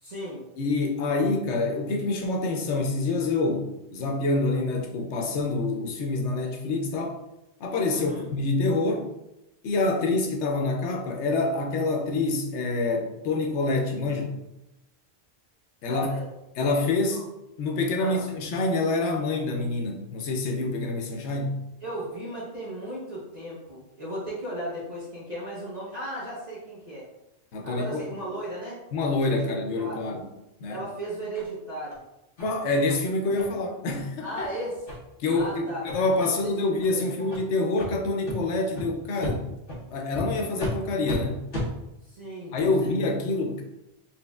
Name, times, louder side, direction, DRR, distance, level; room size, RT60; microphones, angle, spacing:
voice 1, 0.0-0.4 7.9-8.3 15.8-16.3 17.1-17.2 18.0-18.2 21.8-27.1 27.6-28.8 29.4-30.0 30.7-32.0 34.2-34.8 35.3-35.8 36.2-36.5 36.8-37.3 42.0-42.9, right 1 dB, 40° right, -7 dB, 0.9 m, -36 dB
voice 2, 0.6-7.2 7.6-9.1 9.6-14.4 15.8-16.1 16.6-17.3 17.6-21.6 27.5-28.0 28.9-30.2 30.6-30.8 32.4-34.5 35.2-39.4 39.9-41.4 42.5-43.6, left 2 dB, 85° left, 3 dB, 0.9 m, -26 dB
sound 1, 31.3-31.5 31.9-32.0 32.4-32.5 32.9-33.0 33.4-33.5 33.8-34.0 34.3-34.5 34.9-35.0 35.3-35.5 35.8-36.2 36.7-36.9 37.3-37.4 37.8-37.9 38.2-38.4 38.7-38.8 39.2-39.3 39.7-39.8 40.1-40.2 40.6-40.7 41.0-41.2 41.5-41.7, left 2 dB, 55° left, 1.2 m, -33 dB
4.2 x 3.1 x 2.3 m, 0.91 s
omnidirectional pair, 1.1 m